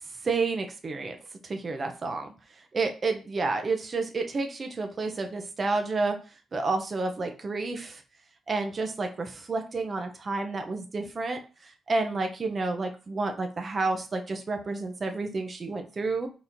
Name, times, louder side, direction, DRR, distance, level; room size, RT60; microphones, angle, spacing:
voice 1, 0.2-1.2 1.4-2.3 2.7-6.2 6.5-8.0 8.5-16.3, right 3 dB, 35° right, 5 dB, 0.5 m, -30 dB
3.9 x 2.9 x 2.5 m, 0.35 s
cardioid pair, 120°, 0 cm